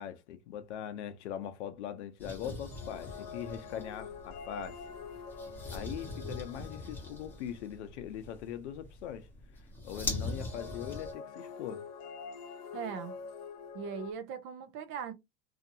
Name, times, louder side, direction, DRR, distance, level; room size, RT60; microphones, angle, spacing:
voice 1, 0.0-4.8 5.7-9.3 9.8-11.8, left 10 dB, 90° left, 0.7 m, -41 dB
sound 1, 2.2-11.1, left 2 dB, 5° left, 0.8 m, -42 dB
sound 2, 2.5-7.5 10.1-14.1, left 6 dB, 50° left, 0.7 m, -46 dB
voice 2, 12.7-13.1 13.7-15.1, right 7 dB, 35° right, 0.5 m, -39 dB
2.7 x 2.5 x 2.5 m
supercardioid pair, 145°, 34 cm